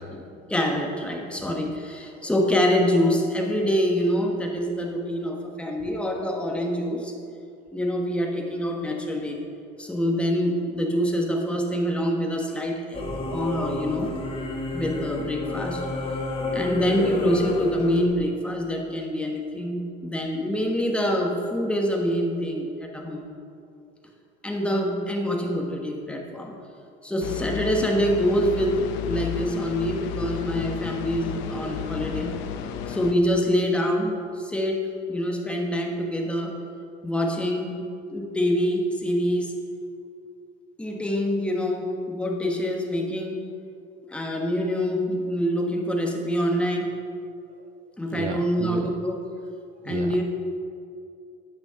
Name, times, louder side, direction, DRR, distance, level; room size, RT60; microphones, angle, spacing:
voice 1, 0.3-7.1 7.7-9.4 9.8-14.1 14.7-15.8 16.5-23.3 24.4-26.6 27.0-32.3 32.9-34.8 35.1-36.6 37.0-39.5 40.8-43.4 44.1-46.9 48.0-49.1 49.8-50.2, equal, 5° left, 0 dB, 1.3 m, -25 dB
Singing / Musical instrument, 12.9-18.0, left 2 dB, 30° left, 1.3 m, -31 dB
sound 1, 27.2-33.1, left 9 dB, 80° left, 0.8 m, -32 dB
voice 2, 48.1-48.9 49.8-50.2, right 8 dB, 45° right, 7 dB, 0.5 m, -33 dB
10.5 x 6.2 x 5.7 m, 2.4 s
cardioid pair, 135°, 19 cm